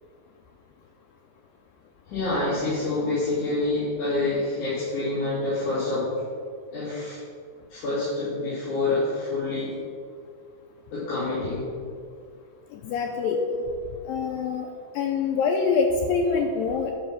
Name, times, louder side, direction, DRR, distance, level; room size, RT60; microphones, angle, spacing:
voice 1, 2.1-6.1 6.7-7.2 7.7-9.7 10.9-11.7 13.2-13.4, left 2 dB, 50° left, -13 dB, 4.1 m, -27 dB
voice 2, 12.7-13.4 14.1-14.7 15.0-16.9, left 5 dB, 85° left, 2 dB, 2.1 m, -25 dB
10.5 x 5.5 x 6.1 m, 2.2 s
omnidirectional pair, 4.7 m